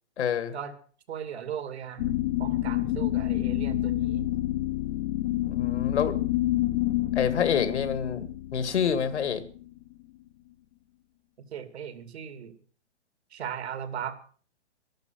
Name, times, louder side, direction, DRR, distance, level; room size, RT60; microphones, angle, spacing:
voice 1, 0.2-0.5 5.5-6.2 7.2-8.3 8.5-9.4, left 7 dB, 75° left, 13 dB, 2.2 m, -27 dB
voice 2, 1.1-4.3 11.5-12.5 13.3-14.2, right 8 dB, 65° right, 10 dB, 2.7 m, -37 dB
sound 1, 2.0-9.9, left 15 dB, 40° left, 0.9 m, -28 dB
12.5 x 12.0 x 7.7 m, 0.43 s
hypercardioid pair, 135°, 35 cm